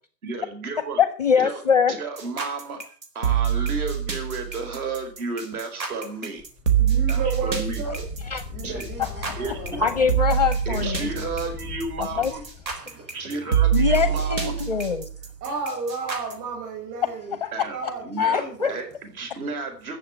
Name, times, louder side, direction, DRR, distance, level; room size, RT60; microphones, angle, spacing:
voice 1, 0.2-1.0 1.4-1.6 1.9-6.4 7.1-7.8 8.6-8.8 9.4-9.6 10.7-12.4 13.1-14.5 17.5-20.0, right 3 dB, 55° right, 7 dB, 4.6 m, -33 dB
voice 2, 1.0-1.9 8.3-8.4 9.0-9.4 9.8-11.1 12.0-12.3 13.7-15.1 17.4-17.5 17.8-17.9 18.2-18.7, left 7 dB, 25° left, 12 dB, 0.5 m, -23 dB
sound 1, 2.2-16.3, right 9 dB, 90° right, 4.5 m, -25 dB
Wind, 6.4-12.8, left 5 dB, 5° right, 0.7 m, -38 dB
voice 3, 6.8-8.0 8.5-10.1 10.8-10.9 12.8-13.0 14.1-14.2 15.4-18.8, right 4 dB, 25° right, 2 dB, 6.7 m, -33 dB
15.0 x 7.3 x 8.3 m, 0.43 s
hypercardioid pair, 170°, 49 cm